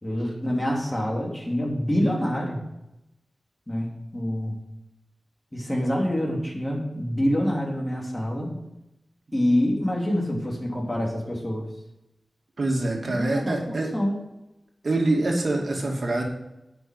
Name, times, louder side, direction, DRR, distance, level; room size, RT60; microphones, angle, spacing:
voice 1, 0.0-2.6 3.7-4.5 5.5-8.6 9.3-11.6 13.0-14.2, equal, 20° left, -2 dB, 3.3 m, -26 dB
voice 2, 12.6-13.9 14.8-16.2, right 2 dB, 65° right, 1 dB, 2.3 m, -25 dB
9.3 x 6.2 x 7.7 m, 0.92 s
wide cardioid pair, 60°, 0 cm